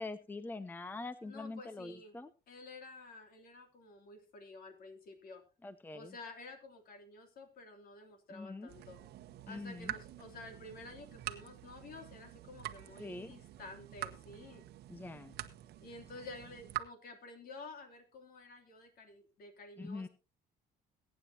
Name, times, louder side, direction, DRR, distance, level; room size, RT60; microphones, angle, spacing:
voice 1, 0.0-2.3 5.6-6.2 8.3-8.7 9.5-9.9 13.0-13.3 14.9-15.4 19.8-20.1, left 3 dB, 10° left, 14 dB, 0.6 m, -44 dB
voice 2, 1.2-2.1 2.5-5.4 5.9-9.0 9.5-14.6 15.8-20.1, left 2 dB, 60° left, 6 dB, 3.1 m, -51 dB
sound 1, 8.7-16.8, right 13 dB, 75° right, 1.1 m, -46 dB
22.0 x 9.2 x 2.8 m, 0.32 s
cardioid pair, 110°, 17 cm